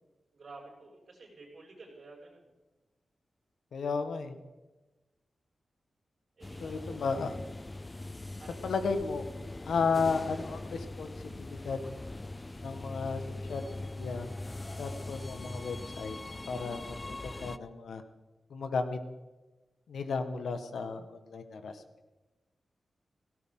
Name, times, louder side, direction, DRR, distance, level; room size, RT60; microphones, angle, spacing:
voice 1, 0.3-2.5 6.4-7.2 8.4-8.7, right 3 dB, 55° right, -3 dB, 7.2 m, -51 dB
voice 2, 3.7-4.3 6.6-7.3 8.6-9.3 9.7-11.8 12.6-14.3 14.8-16.2 16.5-17.1 17.4-18.0 18.5-19.0 19.9-21.8, left 4 dB, 85° left, 8 dB, 1.5 m, -34 dB
sound 1, 6.4-17.6, left 2 dB, 20° left, 0.5 m, -41 dB
17.5 x 17.5 x 3.9 m, 1.1 s
wide cardioid pair, 115°, 0 cm